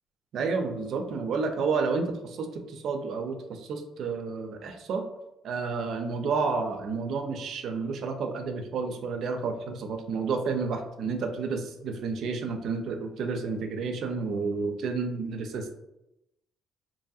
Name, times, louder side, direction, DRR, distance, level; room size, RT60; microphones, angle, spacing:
voice 1, 0.3-5.0 5.4-15.7, right 4 dB, 55° right, 5 dB, 0.4 m, -30 dB
2.9 x 2.6 x 2.3 m, 0.88 s
cardioid pair, 155°, 0 cm